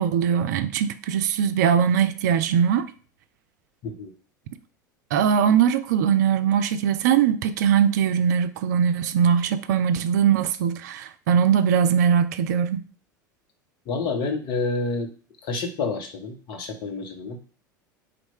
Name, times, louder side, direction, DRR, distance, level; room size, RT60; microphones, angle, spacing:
voice 1, 0.0-2.9 5.1-12.9, right 8 dB, 60° right, 0.5 m, -21 dB
voice 2, 3.8-4.1 13.9-15.1 15.4-17.4, left 3 dB, 45° left, 1.2 m, -28 dB
4.4 x 2.5 x 4.5 m
figure-of-eight pair, 75°, 11 cm